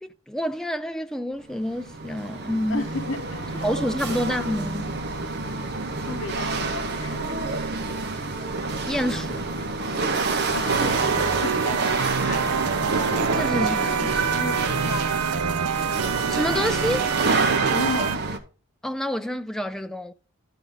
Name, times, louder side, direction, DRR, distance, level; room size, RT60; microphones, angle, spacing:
voice 1, 0.0-2.9 3.6-4.9 8.9-9.5 13.3-14.2 16.3-17.1 18.8-20.1, equal, ahead, 0.4 m, -28 dB
Chatter / Hiss / Rattle, 1.5-18.4, right 3 dB, 45° right, 0.9 m, -27 dB
voice 2, 2.7-3.7 6.0-7.5 9.9-12.5 14.3-15.3 17.7-18.3, left 4 dB, 60° left, 0.9 m, -34 dB
sound 1, 10.7-18.2, right 7 dB, 90° right, 0.5 m, -27 dB
12.0 x 4.8 x 3.9 m
head